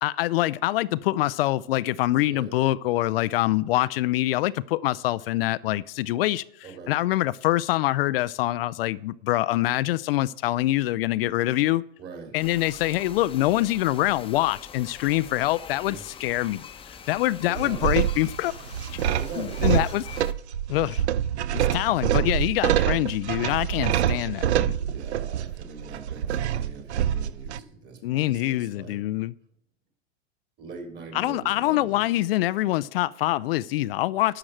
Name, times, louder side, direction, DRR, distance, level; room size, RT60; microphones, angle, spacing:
voice 1, 0.0-6.4 6.9-11.8 12.3-16.6 17.1-18.5 19.4-20.1 20.7-21.0 21.7-24.7 28.0-29.3 31.1-34.4, left 16 dB, 60° left, 0.5 m, -25 dB
voice 2, 6.6-6.9 12.0-12.4 15.8-16.0 17.3-17.9 19.0-19.7 21.5-22.0 24.0-24.4 24.9-29.0 30.6-32.0, right 5 dB, 30° right, 3.3 m, -42 dB
sound 1, 12.4-20.3, left 7 dB, 15° left, 0.9 m, -44 dB
sound 2, 17.6-27.6, right 10 dB, 85° right, 0.6 m, -26 dB
11.5 x 5.9 x 7.7 m
hypercardioid pair, 110°, 33 cm